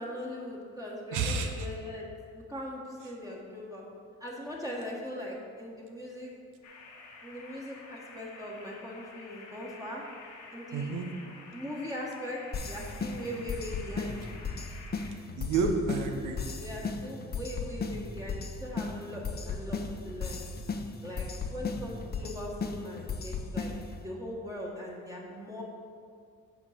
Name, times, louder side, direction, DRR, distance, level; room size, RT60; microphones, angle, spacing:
voice 1, 0.0-2.1 2.3-3.8 4.2-6.3 7.2-10.0 10.5-10.9 11.5-14.2 16.6-20.4 21.0-23.7 24.0-25.6, left 1 dB, 10° right, -4 dB, 1.4 m, -40 dB
voice 2, 1.1-1.7 3.0-3.1 10.7-11.1 15.3-16.4, right 4 dB, 85° right, 4 dB, 1.0 m, -30 dB
sound 1, 6.6-15.1, left 4 dB, 75° left, 1.4 m, -50 dB
sound 2, 12.5-24.0, left 4 dB, 30° left, 0.7 m, -36 dB
8.1 x 4.6 x 5.8 m, 2.2 s
cardioid pair, 90°, 30 cm